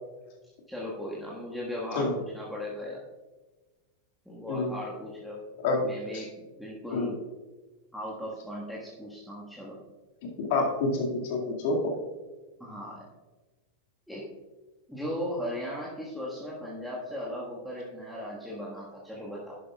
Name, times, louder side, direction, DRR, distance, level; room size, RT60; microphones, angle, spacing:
voice 1, 0.7-3.0 4.2-5.4 5.8-7.2 7.9-9.8 12.6-13.1 14.1-14.3 14.9-19.5, equal, ahead, -6 dB, 1.6 m, -37 dB
voice 2, 10.5-11.8, left 3 dB, 50° left, 0 dB, 2.1 m, -27 dB
11.5 x 10.5 x 2.4 m, 1.2 s
figure-of-eight pair, 90°, 0 cm